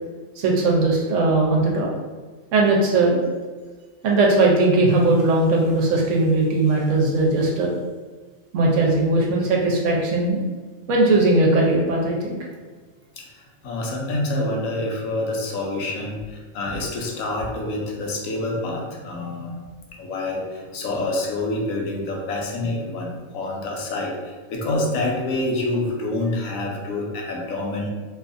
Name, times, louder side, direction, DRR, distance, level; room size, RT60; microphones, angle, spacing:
voice 1, 0.4-1.9 2.5-3.2 4.0-7.7 8.5-10.4 10.9-12.4, right 2 dB, 70° right, -1 dB, 0.9 m, -19 dB
voice 2, 13.6-19.5 20.0-27.9, left 2 dB, 85° left, 0 dB, 1.0 m, -27 dB
2.6 x 2.3 x 2.5 m, 1.4 s
omnidirectional pair, 1.4 m